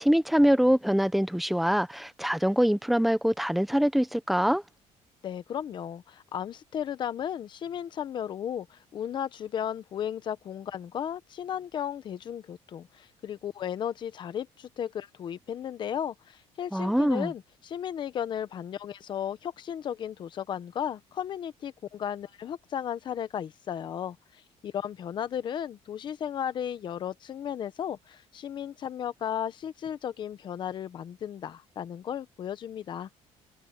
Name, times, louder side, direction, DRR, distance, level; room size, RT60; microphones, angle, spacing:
voice 1, 0.0-4.6 16.7-17.3, equal, ahead, 0.8 m, -24 dB
voice 2, 5.2-33.1, left 9 dB, 40° left, 1.1 m, -35 dB
cardioid pair, 160°, 12 cm